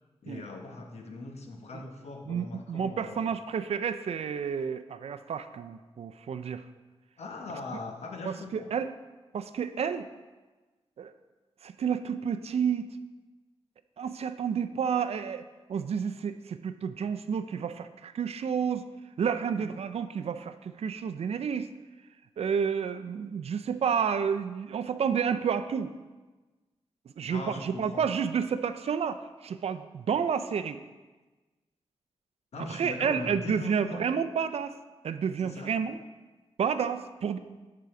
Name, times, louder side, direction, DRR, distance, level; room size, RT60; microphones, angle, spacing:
voice 1, 0.2-3.3 7.2-8.7 19.6-19.7 27.3-28.1 32.5-34.1 35.4-35.7, left 3 dB, 80° left, 2 dB, 1.0 m, -40 dB
voice 2, 2.3-6.6 8.3-8.9 9.3-10.1 11.0-11.1 11.6-12.9 14.0-18.8 19.2-21.7 22.4-25.9 27.2-30.8 32.7-34.7 35.0-36.0 36.6-37.4, right 7 dB, 70° right, 10 dB, 0.4 m, -30 dB
8.1 x 3.9 x 5.8 m, 1.2 s
wide cardioid pair, 125°, 11 cm